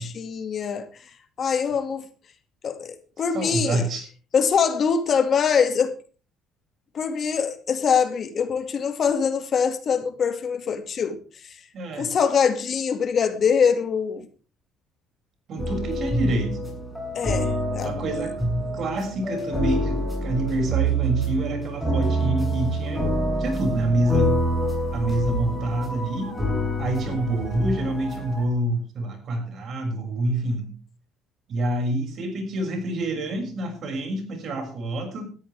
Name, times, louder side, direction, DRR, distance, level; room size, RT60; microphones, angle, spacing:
voice 1, 0.0-2.1 2.6-3.8 4.3-5.9 6.9-11.6 12.0-14.3 17.1-17.9, left 6 dB, 45° left, 2.2 m, -24 dB
voice 2, 3.3-4.1 11.7-12.1 15.5-16.6 17.8-18.3 18.7-23.0 23.4-24.4 24.9-26.4 26.8-30.8 31.5-35.3, right 2 dB, 50° right, 6.6 m, -27 dB
sound 1, 15.6-28.4, right 1 dB, ahead, 7.9 m, -26 dB
18.5 x 13.5 x 3.5 m
cardioid pair, 125°, 0 cm